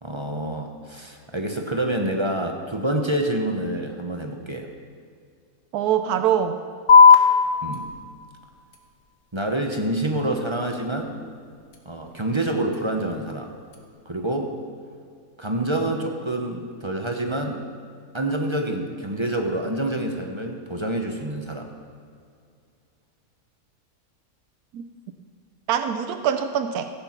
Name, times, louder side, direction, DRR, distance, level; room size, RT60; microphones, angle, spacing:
voice 1, 0.0-4.7 7.6-7.9 9.3-11.2 11.8-13.5 14.1-14.6 15.4-17.6 18.1-21.7, right 1 dB, 20° right, 3 dB, 0.9 m, -27 dB
voice 2, 5.7-6.6 24.7-24.8 25.7-26.9, right 9 dB, 85° right, 8 dB, 1.1 m, -23 dB
sound 1, 6.9-13.9, left 5 dB, 75° left, 1.8 m, -22 dB
15.0 x 9.0 x 5.9 m, 2.2 s
omnidirectional pair, 1.6 m